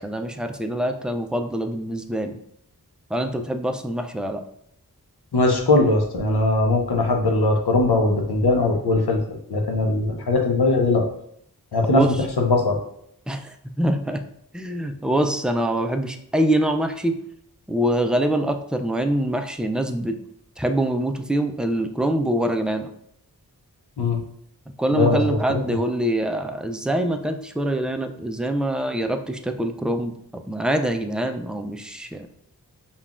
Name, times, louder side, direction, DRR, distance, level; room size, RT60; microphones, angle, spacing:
voice 1, 0.0-2.4 3.1-4.4 11.9-12.1 13.3-14.2 14.5-17.2 17.7-20.2 20.6-22.9 24.8-30.1 30.5-32.3, right 1 dB, ahead, 5 dB, 0.3 m, -24 dB
voice 2, 5.3-9.2 9.5-11.1 11.7-12.8 24.0-24.2 24.9-25.6, left 2 dB, 85° left, 2 dB, 0.7 m, -20 dB
5.4 x 2.4 x 2.4 m, 0.70 s
wide cardioid pair, 40°, 38 cm